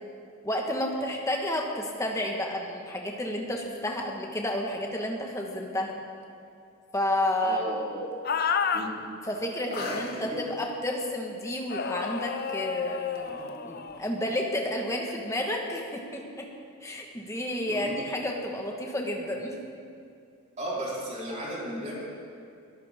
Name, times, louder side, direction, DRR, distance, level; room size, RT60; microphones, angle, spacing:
voice 1, 0.4-6.0 6.9-7.6 9.2-16.5 16.8-19.6, left 1 dB, 15° left, 0 dB, 1.6 m, -31 dB
voice 2, 7.4-8.0 8.7-9.0 9.7-10.4 17.7-17.9 20.6-21.9, right 1 dB, 35° right, -7 dB, 4.2 m, -34 dB
sound 1, 8.2-8.9 9.7-10.2 11.7-14.0, left 6 dB, 45° left, 0.6 m, -31 dB
22.5 x 14.0 x 3.8 m, 2.5 s
head